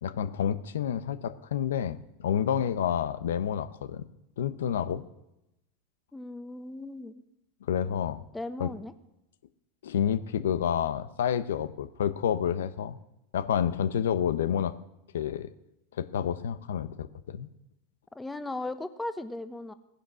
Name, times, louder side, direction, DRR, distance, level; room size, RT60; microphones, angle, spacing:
voice 1, 0.0-4.1 4.4-5.0 7.7-8.2 8.6-8.7 9.8-13.0 13.3-14.7 15.1-15.5 16.0-17.5, left 9 dB, 80° left, 13 dB, 0.9 m, -29 dB
voice 2, 6.1-7.2 8.3-8.9 18.1-19.7, left 2 dB, 10° left, 11 dB, 1.2 m, -37 dB
17.0 x 10.5 x 6.3 m, 0.88 s
hypercardioid pair, 100°, 0 cm